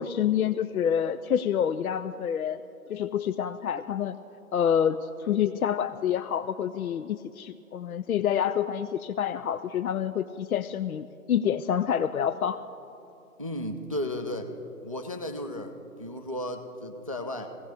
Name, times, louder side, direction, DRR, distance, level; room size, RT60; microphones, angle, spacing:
voice 1, 0.0-2.6 2.9-4.2 4.5-12.6, left 8 dB, 75° left, 13 dB, 0.5 m, -27 dB
voice 2, 13.4-14.5 14.8-17.5, left 1 dB, 25° right, 6 dB, 0.4 m, -34 dB
18.0 x 16.5 x 3.5 m, 2.8 s
figure-of-eight pair, 140°, 44 cm